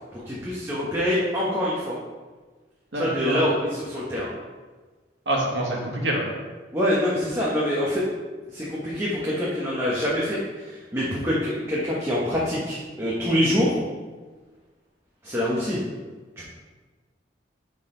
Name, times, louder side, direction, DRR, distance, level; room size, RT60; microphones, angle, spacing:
voice 1, 0.1-2.0 2.9-4.3 6.7-8.0 8.5-13.8 15.2-15.8 16.4-16.5, equal, 15° right, -7 dB, 1.1 m, -25 dB
voice 2, 2.9-3.4 5.2-6.2, right 1 dB, 85° right, -2 dB, 1.8 m, -26 dB
9.7 x 4.1 x 3.9 m, 1.4 s
head